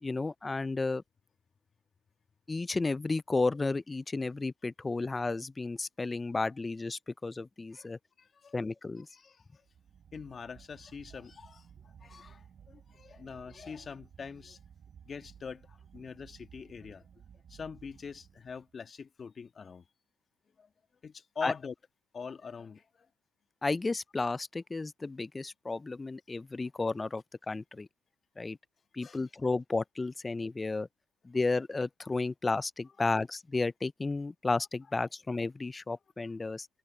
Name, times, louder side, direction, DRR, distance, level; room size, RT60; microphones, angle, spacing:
voice 1, 0.0-1.0 2.5-8.0 8.5-9.1 21.4-21.5 23.6-27.9 28.4-28.6 28.9-30.9 31.2-36.7, left 3 dB, 25° left, 0.4 m, -33 dB
voice 2, 8.2-8.6 9.0-9.4 10.1-14.6 15.0-17.1 17.5-19.9 20.6-20.7 21.0-21.7 22.1-23.1 29.0-29.2, left 5 dB, 40° left, 1.6 m, -44 dB
sound 1, 9.6-18.7, right 8 dB, 55° right, 6.7 m, -56 dB
supercardioid pair, 65°, 0 cm